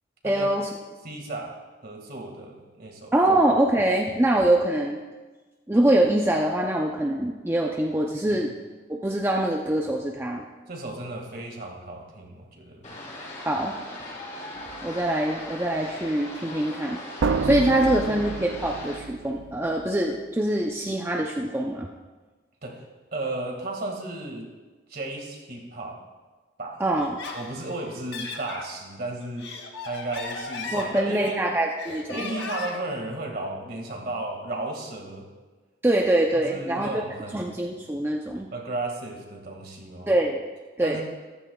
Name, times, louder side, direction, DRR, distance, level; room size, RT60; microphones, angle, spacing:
voice 1, 0.2-0.7 3.1-5.0 5.7-8.5 8.9-10.5 13.4-13.8 14.8-17.0 17.4-21.9 26.8-27.2 30.7-32.3 35.8-37.0 37.3-38.5 40.1-40.4 40.8-41.0, right 1 dB, 10° right, 0 dB, 0.5 m, -24 dB
voice 2, 1.0-3.1 8.3-8.5 10.7-13.0 22.6-22.9 23.1-24.5 24.9-26.0 26.6-26.8 27.3-29.5 29.8-31.5 32.1-35.3 36.3-37.5 38.5-40.1 40.8-41.0, right 2 dB, 50° right, 1 dB, 2.0 m, -34 dB
sound 1, 12.8-19.0, left 1 dB, 40° left, 3.3 m, -39 dB
sound 2, 14.6-14.9 17.2-19.8, right 4 dB, 80° right, 0.4 m, -29 dB
Laughter, 27.0-28.7 29.2-31.4 31.8-32.9, left 4 dB, 60° left, 1.3 m, -37 dB
14.5 x 13.5 x 2.3 m, 1.3 s
head